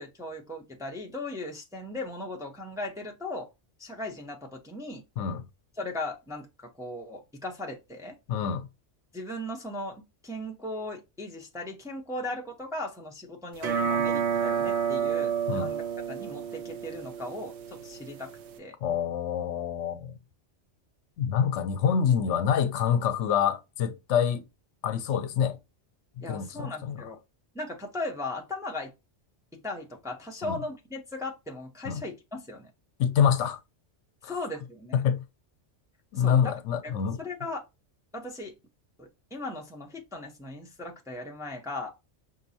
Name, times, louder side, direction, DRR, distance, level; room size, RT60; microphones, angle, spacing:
voice 1, 0.0-3.5 3.8-5.0 5.8-8.2 9.1-18.3 18.6-18.8 26.2-27.2 27.5-28.9 29.5-32.7 34.2-35.0 36.1-36.5 36.8-36.9 37.2-37.6 38.1-38.5 39.0-42.0, left 2 dB, 5° right, 0.5 m, -37 dB
voice 2, 8.3-8.7 15.5-15.7 18.8-20.2 21.2-24.4 24.8-25.6 26.2-27.0 30.4-30.6 31.9-32.0 33.0-33.6 34.2-34.4 34.9-35.2 36.1-37.2, left 8 dB, 75° left, 0.9 m, -26 dB
sound 1, 13.6-18.6, right 7 dB, 70° right, 0.9 m, -30 dB
5.9 x 2.6 x 2.7 m
omnidirectional pair, 1.2 m